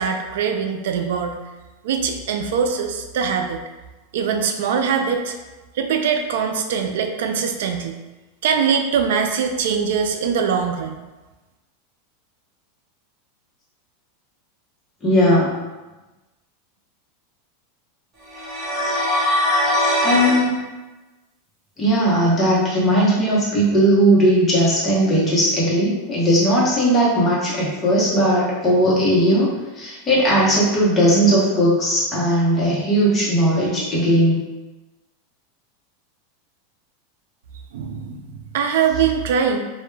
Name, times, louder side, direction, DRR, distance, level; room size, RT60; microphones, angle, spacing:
voice 1, 0.0-1.4 1.8-3.6 4.1-5.3 5.8-7.9 8.4-11.0 37.7-39.6, right 6 dB, 75° right, 5 dB, 0.3 m, -22 dB
voice 2, 15.0-15.6 19.8-20.7 21.8-29.5 29.8-34.5, equal, 20° left, -6 dB, 0.8 m, -18 dB
sound 1, 18.3-20.5, left 1 dB, 25° right, 0.9 m, -20 dB
2.1 x 2.1 x 3.1 m, 1.1 s
supercardioid pair, 150°, 0 cm